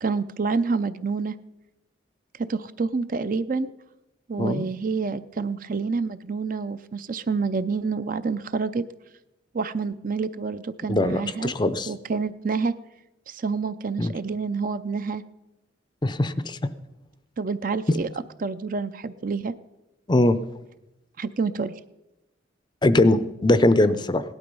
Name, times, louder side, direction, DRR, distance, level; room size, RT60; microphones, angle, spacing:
voice 1, 0.0-1.3 2.5-3.7 4.3-8.8 9.5-11.5 11.9-12.7 13.3-15.2 17.4-18.1 18.4-19.5 21.2-21.7, right 4 dB, 45° right, 13 dB, 0.5 m, -28 dB
voice 2, 10.9-11.9 14.0-14.1 16.0-16.6 20.1-20.4 22.8-24.2, left 1 dB, 20° left, 13 dB, 0.5 m, -21 dB
17.5 x 11.5 x 5.4 m, 0.96 s
head